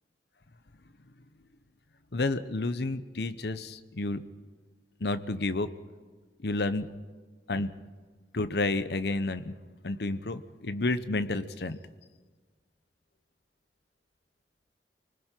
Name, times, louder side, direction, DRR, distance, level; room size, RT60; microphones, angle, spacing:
voice 1, 2.1-4.2 5.0-5.7 6.4-6.9 7.5-7.7 8.3-9.5 9.8-11.8, left 2 dB, 65° left, 12 dB, 1.0 m, -30 dB
28.5 x 20.0 x 4.6 m, 1.5 s
head